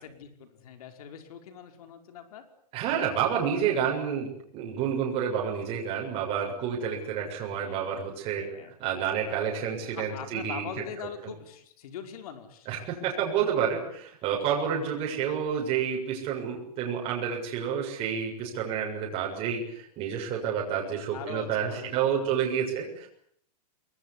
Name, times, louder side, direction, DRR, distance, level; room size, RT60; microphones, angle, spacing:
voice 1, 0.0-2.5 7.5-8.1 8.3-8.7 9.9-12.7 21.1-22.6, left 8 dB, 60° left, 7 dB, 5.2 m, -43 dB
voice 2, 2.7-4.3 4.5-10.7 11.2-11.3 12.7-23.1, right 8 dB, 25° right, -1 dB, 6.9 m, -29 dB
25.0 x 21.5 x 9.8 m, 0.66 s
supercardioid pair, 160°, 21 cm